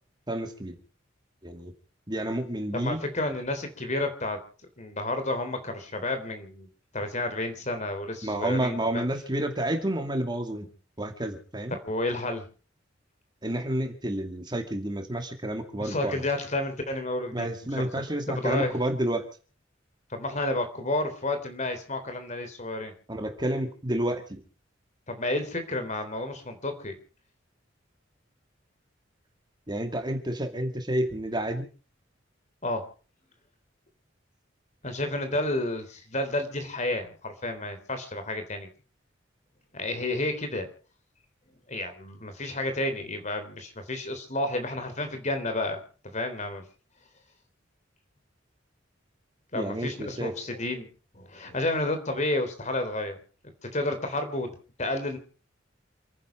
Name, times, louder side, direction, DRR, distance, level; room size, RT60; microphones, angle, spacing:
voice 1, 0.3-0.8 1.4-1.7 2.1-3.0 8.2-10.7 11.0-11.8 13.4-16.2 17.3-19.3 23.1-24.4 29.7-31.7 49.5-50.3, right 1 dB, 25° right, 5 dB, 2.6 m, -30 dB
voice 2, 2.7-4.4 4.8-6.7 6.9-9.0 11.7-12.4 15.8-17.9 18.3-18.8 20.1-22.9 25.1-27.0 32.6-32.9 34.8-38.7 39.7-40.7 41.7-46.6 49.5-53.2 53.6-54.5 54.8-55.2, left 2 dB, 40° left, 8 dB, 3.6 m, -31 dB
28.5 x 10.5 x 4.6 m, 0.39 s
head